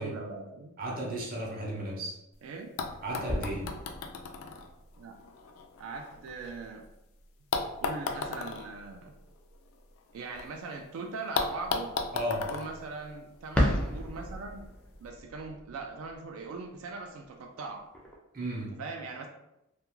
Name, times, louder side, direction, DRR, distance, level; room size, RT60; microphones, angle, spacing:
voice 1, 0.0-0.7 2.4-2.7 5.0-5.2 5.8-6.9 7.8-9.1 10.1-11.9 12.5-14.7 15.0-17.8 18.8-19.3, right 4 dB, 90° right, 2 dB, 0.3 m, -40 dB
voice 2, 0.8-2.2 3.0-3.8 12.1-12.5 18.3-18.8, right 1 dB, 45° right, -1 dB, 0.6 m, -34 dB
sound 1, 2.3-2.4 2.8-6.9 7.5-10.5 10.7-10.8 11.3-13.7 14.7-14.8, left 4 dB, 85° left, 0.3 m, -36 dB
sound 2, 2.7-5.6 13.3-18.2, equal, 5° left, 0.4 m, -34 dB
2.3 x 2.2 x 3.0 m, 0.89 s
head